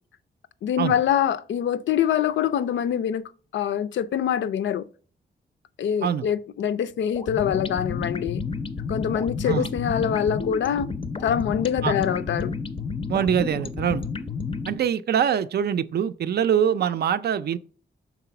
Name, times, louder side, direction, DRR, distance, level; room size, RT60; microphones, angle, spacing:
voice 1, 0.6-3.2 3.5-4.9 5.8-8.4 8.9-10.9 11.2-12.5, left 9 dB, 80° left, 0.5 m, -24 dB
sound 1, 7.1-14.8, left 4 dB, 30° left, 0.5 m, -31 dB
voice 2, 13.1-14.1 14.7-17.6, right 8 dB, 60° right, 0.4 m, -23 dB
6.0 x 3.9 x 5.7 m
wide cardioid pair, 150°, 19 cm